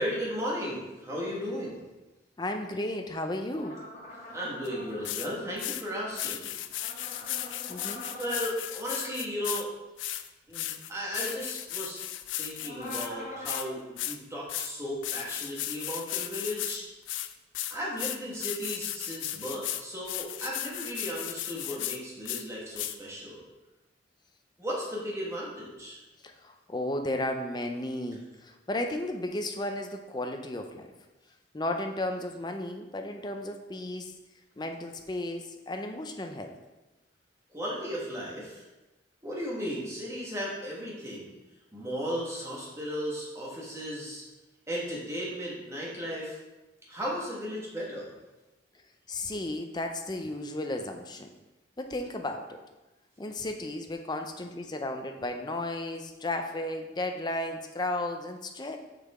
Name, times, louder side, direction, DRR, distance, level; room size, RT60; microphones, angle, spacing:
voice 1, 0.0-1.8 4.3-6.5 8.2-9.7 10.5-12.1 12.3-16.8 17.7-23.4 24.6-26.0 37.5-38.6 39.2-41.3 41.7-44.2 44.7-46.4 46.9-48.1, equal, 15° right, -5 dB, 1.6 m, -35 dB
voice 2, 2.4-3.8 7.7-8.1 26.2-30.9 31.5-34.1 34.6-36.6 49.1-51.3 51.8-52.6 53.2-58.8, left 1 dB, 25° left, 5 dB, 0.6 m, -34 dB
sound 1, 3.5-5.0 6.7-8.5 12.6-13.7, left 1 dB, 45° left, 1.4 m, -43 dB
sound 2, 4.6-4.7 5.0-5.3 5.6-5.8 6.1-9.6 10.0-13.1 13.4-13.6 14.0-14.2 14.5-14.7 15.0-16.8 17.1-22.0 22.2-22.4 22.8-22.9, left 13 dB, 90° left, 0.4 m, -35 dB
6.6 x 5.7 x 3.6 m, 1.1 s
head